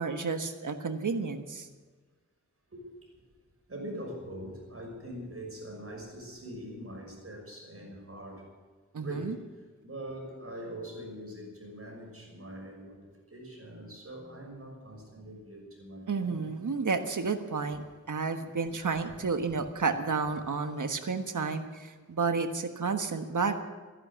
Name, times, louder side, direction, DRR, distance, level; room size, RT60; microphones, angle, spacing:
voice 1, 0.0-1.7 8.9-9.3 16.1-23.6, right 4 dB, 85° right, 7 dB, 1.4 m, -31 dB
voice 2, 2.7-3.1 3.7-8.5 9.0-9.4 9.8-13.0 13.3-16.4, right 1 dB, 50° right, 0 dB, 6.2 m, -43 dB
15.0 x 11.0 x 8.5 m, 1.3 s
wide cardioid pair, 60°, 30 cm